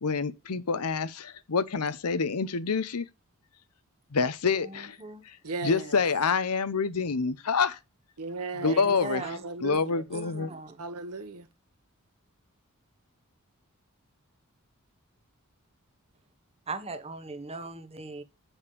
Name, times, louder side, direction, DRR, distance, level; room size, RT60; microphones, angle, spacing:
voice 1, 0.0-3.1 4.1-5.0 5.6-7.8 8.6-9.2 9.6-10.5, left 5 dB, 90° left, 0.8 m, -27 dB
voice 2, 4.6-5.2 8.6-9.4 10.1-10.8 16.7-18.2, right 3 dB, 25° right, 1.1 m, -39 dB
voice 3, 5.4-6.0 8.2-10.0 10.8-11.5, right 3 dB, 90° right, 1.4 m, -37 dB
7.3 x 5.3 x 6.8 m
head